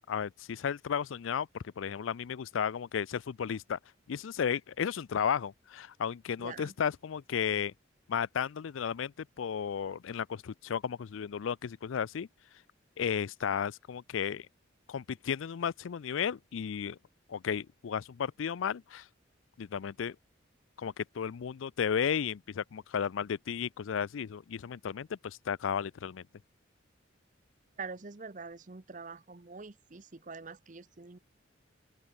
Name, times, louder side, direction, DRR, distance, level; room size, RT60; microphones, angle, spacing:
voice 1, 0.1-1.5 1.8-3.8 4.1-7.7 8.1-12.3 13.0-14.5 14.9-17.0 17.3-19.1 19.6-20.2 20.8-26.2, left 7 dB, 90° left, 0.4 m, -34 dB
voice 2, 6.4-6.7 27.8-31.2, right 4 dB, 40° right, 0.8 m, -45 dB
open air
head